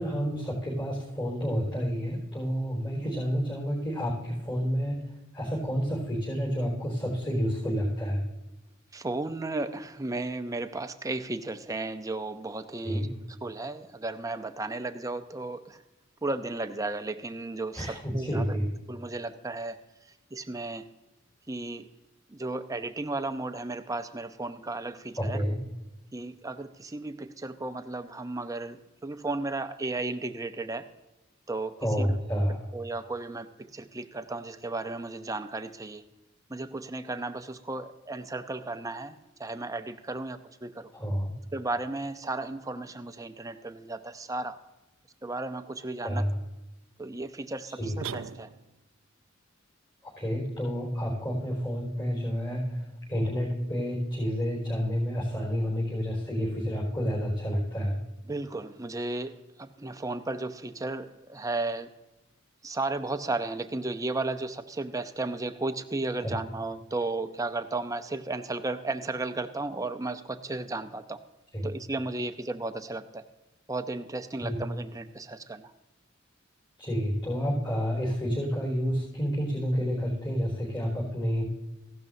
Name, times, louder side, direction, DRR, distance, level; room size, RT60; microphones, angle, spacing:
voice 1, 0.0-8.2 12.8-13.1 17.7-18.7 25.1-25.6 31.8-32.6 40.9-41.3 46.0-46.4 47.8-47.9 50.0-58.0 66.2-66.3 71.5-71.7 74.4-74.5 76.8-81.5, equal, 25° left, -7 dB, 4.6 m, -29 dB
voice 2, 8.9-13.1 13.4-15.8 16.2-18.6 18.9-19.8 20.3-20.8 21.5-21.9 22.3-25.4 26.1-30.9 31.5-32.1 32.7-36.0 36.5-40.9 41.5-44.6 45.2-46.2 47.0-48.5 58.3-61.9 62.6-71.2 71.6-73.2 73.7-75.7, right 2 dB, 15° right, 9 dB, 0.6 m, -34 dB
sound 1, 48.0-48.9, right 7 dB, 90° right, 0.5 m, -39 dB
16.0 x 12.0 x 2.7 m, 1.0 s
head